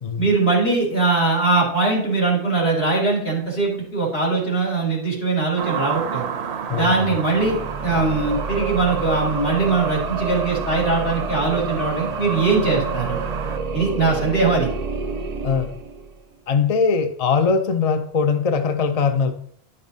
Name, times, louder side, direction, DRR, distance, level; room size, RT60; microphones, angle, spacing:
voice 1, 0.2-6.3 6.7-13.2 13.7-14.7, right 3 dB, 70° left, -4 dB, 2.4 m, -21 dB
sound 1, 5.6-13.6, right 7 dB, 80° right, 0.9 m, -32 dB
voice 2, 6.7-7.2 15.4-15.7 16.5-19.3, left 5 dB, 45° left, 8 dB, 0.5 m, -21 dB
sound 2, 7.2-16.3, right 4 dB, 45° right, 0.6 m, -28 dB
10.5 x 5.4 x 2.7 m, 0.65 s
omnidirectional pair, 1.1 m